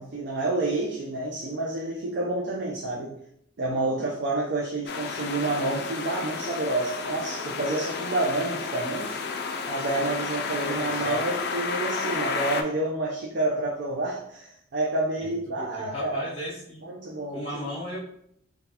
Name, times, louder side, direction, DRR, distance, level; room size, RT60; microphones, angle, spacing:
voice 1, 0.0-3.2 3.6-9.2 9.7-16.3 16.8-17.8, right 2 dB, 55° right, -2 dB, 0.4 m, -29 dB
sound 1, 4.9-12.6, left 5 dB, 50° left, 0.3 m, -32 dB
voice 2, 10.6-11.2 15.5-16.9 17.3-18.0, left 1 dB, 25° left, -6 dB, 1.3 m, -36 dB
3.9 x 2.3 x 2.8 m, 0.71 s
head